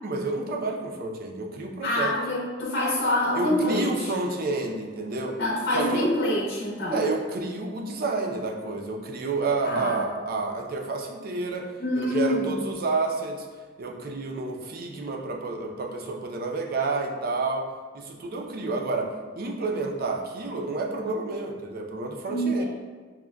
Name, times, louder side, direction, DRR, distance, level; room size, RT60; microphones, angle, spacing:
voice 1, 0.0-2.1 3.3-5.4 5.7-6.1 6.9-13.5 13.8-17.7 17.9-22.6, right 3 dB, 50° right, 2 dB, 0.4 m, -30 dB
voice 2, 1.8-4.1 5.4-7.0 9.6-10.0 11.8-12.6 22.3-22.6, left 1 dB, 70° left, -6 dB, 0.7 m, -26 dB
6.0 x 2.1 x 2.2 m, 1.5 s
head